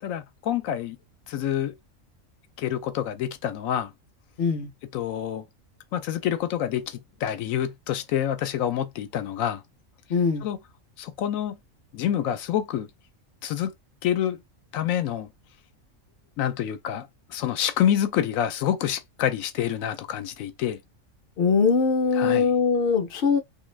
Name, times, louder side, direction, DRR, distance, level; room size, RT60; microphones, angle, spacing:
voice 1, 0.0-1.0 1.3-1.7 2.6-3.9 4.9-5.4 5.9-9.6 10.4-10.6 11.0-11.6 11.9-12.9 13.4-13.7 14.0-14.4 14.7-15.3 16.4-20.8 22.2-22.5, left 10 dB, 85° left, 1.0 m, -27 dB
voice 2, 4.4-4.7 10.1-10.5 21.4-23.4, left 5 dB, 55° left, 0.7 m, -22 dB
2.5 x 2.3 x 3.2 m
omnidirectional pair, 1.4 m